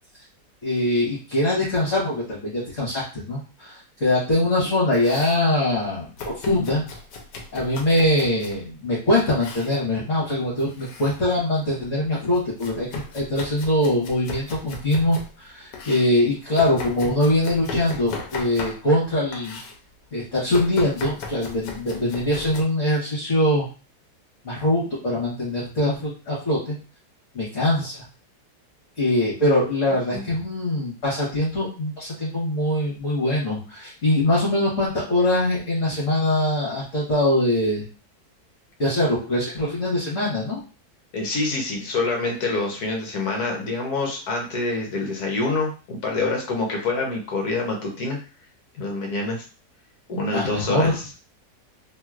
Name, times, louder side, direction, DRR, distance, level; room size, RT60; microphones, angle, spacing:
voice 1, 0.6-6.8 7.5-12.9 13.1-19.6 20.1-23.6 24.4-26.8 27.3-28.0 29.0-37.8 38.8-40.6 50.3-51.0, left 1 dB, 50° left, -8 dB, 1.6 m, -23 dB
Domestic sounds home sounds, 4.9-5.4 6.2-8.6 9.3-9.8 10.6-11.2 11.6-15.3 15.7-19.0 19.3-19.8 20.5-22.6, left 4 dB, 90° left, 1.3 m, -37 dB
voice 2, 41.1-48.2 48.8-49.4 50.1-50.9, left 3 dB, 65° left, 0 dB, 1.3 m, -26 dB
3.2 x 2.9 x 2.4 m, 0.34 s
omnidirectional pair, 1.8 m